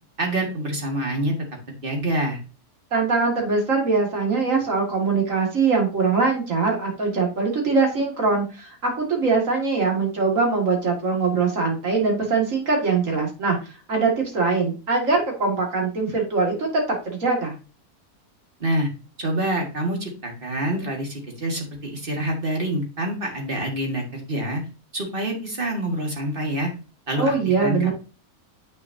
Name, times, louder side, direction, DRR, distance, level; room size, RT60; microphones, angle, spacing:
voice 1, 0.2-1.4 1.7-2.4 18.6-18.9 19.2-24.6 24.9-26.7 27.1-27.3 27.6-27.9, right 1 dB, 35° right, 1 dB, 2.0 m, -26 dB
voice 2, 2.9-13.6 13.9-17.6 27.2-27.9, right 4 dB, 60° right, 1 dB, 2.3 m, -22 dB
8.0 x 6.3 x 2.7 m, 0.33 s
omnidirectional pair, 1.6 m